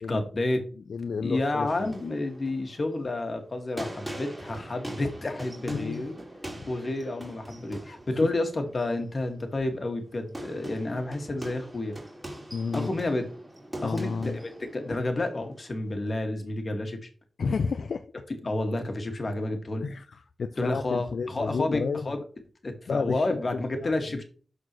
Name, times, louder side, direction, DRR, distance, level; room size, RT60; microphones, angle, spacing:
voice 1, 0.1-0.6 1.2-6.2 6.7-12.0 12.7-13.3 13.8-17.1 18.4-19.9 20.6-22.2 22.6-24.2, left 2 dB, 45° left, 1.9 m, -30 dB
voice 2, 0.9-1.9 5.7-6.1 8.2-8.3 12.5-12.9 13.8-14.4 17.4-18.1 19.8-22.1 22.9-23.4 23.8-24.2, left 5 dB, 80° left, 0.5 m, -31 dB
sound 1, 1.7-16.2, right 1 dB, 15° right, 3.0 m, -43 dB
13.0 x 4.3 x 3.1 m
wide cardioid pair, 75°, 0 cm